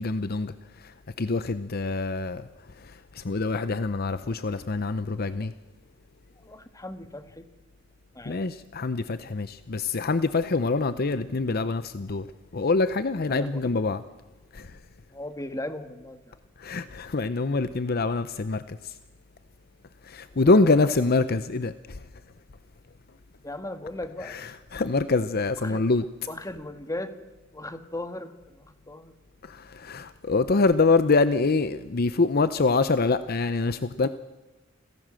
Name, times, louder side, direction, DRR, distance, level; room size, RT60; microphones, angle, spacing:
voice 1, 0.0-2.5 2.8-5.5 8.3-12.3 12.5-14.0 14.5-14.7 16.6-18.9 20.0-22.0 24.2-26.0 29.4-34.1, left 3 dB, 50° left, 0.7 m, -25 dB
voice 2, 6.4-7.5 8.1-8.4 13.3-13.5 15.1-16.4 20.4-21.0 23.4-24.4 25.6-25.8 26.3-27.1 27.5-29.1, left 1 dB, 15° left, 1.6 m, -37 dB
28.5 x 16.0 x 7.6 m
head